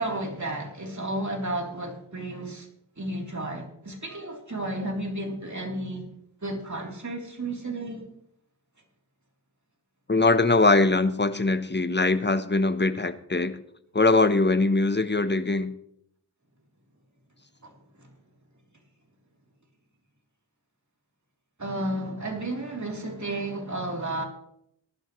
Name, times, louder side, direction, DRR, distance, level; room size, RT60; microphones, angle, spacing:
voice 1, 0.0-2.7 3.0-6.1 6.4-8.1 17.6-18.1 21.6-24.2, right 1 dB, 40° right, 3.3 m, -32 dB
voice 2, 10.1-13.6 13.9-15.7, left 3 dB, 25° left, 0.9 m, -22 dB
18.5 x 11.5 x 3.1 m
wide cardioid pair, 55°, 42 cm